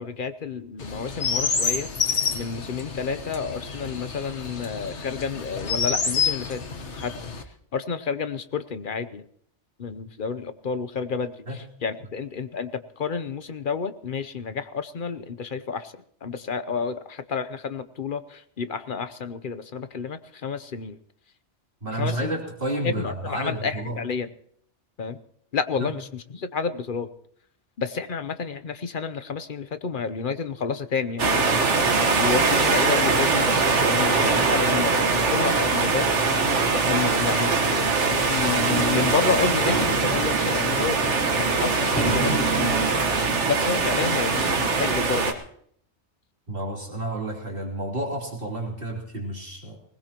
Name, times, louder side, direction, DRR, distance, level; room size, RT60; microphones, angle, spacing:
voice 1, 0.0-1.9 2.3-6.6 7.0-7.1 7.7-9.3 9.8-15.9 16.2-21.0 21.9-22.3 22.8-24.3 25.0-25.2 25.5-27.1 27.8-31.6 32.2-36.1 36.4-41.0 41.4-42.8 43.5-45.4, left 5 dB, 50° left, 11 dB, 0.9 m, -30 dB
Chirp tweet, 0.8-7.4, left 5 dB, 75° left, 1.6 m, -28 dB
voice 2, 21.8-24.0 25.8-25.9 46.5-49.8, right 1 dB, 50° right, -2 dB, 3.6 m, -30 dB
sound 1, 31.2-45.3, right 4 dB, 80° right, 1.7 m, -22 dB
sound 2, 37.9-44.7 45.3-45.4, right 3 dB, 10° left, 4.1 m, -31 dB
20.5 x 19.5 x 3.0 m, 0.64 s
omnidirectional pair, 1.2 m